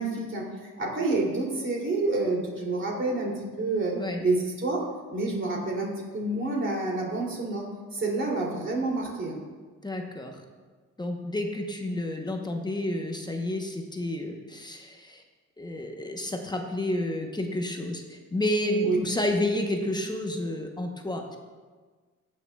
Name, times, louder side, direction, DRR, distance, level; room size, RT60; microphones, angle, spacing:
voice 1, 0.0-3.3 3.6-4.8 5.1-7.6 7.9-9.4 18.8-19.0, right 2 dB, 40° right, -3 dB, 2.8 m, -28 dB
voice 2, 9.8-10.4 11.0-15.2 15.6-21.4, left 1 dB, 15° left, 3 dB, 0.9 m, -30 dB
15.5 x 6.4 x 2.3 m, 1.4 s
cardioid pair, 90°, 30 cm